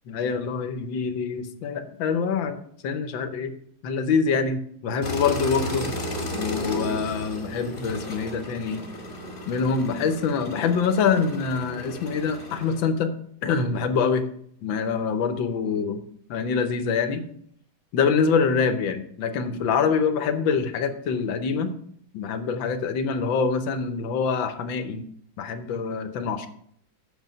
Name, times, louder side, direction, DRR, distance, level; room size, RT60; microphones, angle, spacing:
voice 1, 0.1-2.6 2.8-3.5 3.8-5.9 6.3-8.8 9.5-13.1 13.4-14.2 14.6-16.0 16.3-17.2 17.9-21.7 22.1-25.1 25.4-26.5, left 5 dB, 80° left, 9 dB, 1.6 m, -25 dB
sound 1, 5.0-12.8, left 1 dB, 30° left, 1.5 m, -34 dB
8.3 x 6.6 x 5.4 m, 0.66 s
omnidirectional pair, 2.1 m